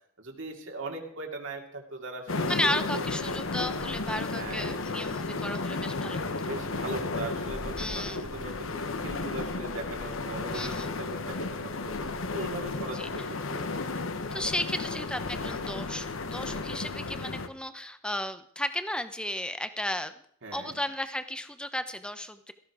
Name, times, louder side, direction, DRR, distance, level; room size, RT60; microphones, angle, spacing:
voice 1, 0.2-2.5 2.9-3.0 4.1-4.7 6.4-12.0 12.3-13.7 20.4-20.8, right 2 dB, 65° right, 1 dB, 2.5 m, -39 dB
sound 1, 2.3-17.5, left 3 dB, 70° left, 1.1 m, -33 dB
voice 2, 2.5-6.3 7.8-8.2 10.5-10.9 12.9-13.1 14.3-20.1 20.5-22.5, left 1 dB, 5° left, 11 dB, 0.8 m, -34 dB
17.5 x 14.0 x 4.9 m, 0.63 s
head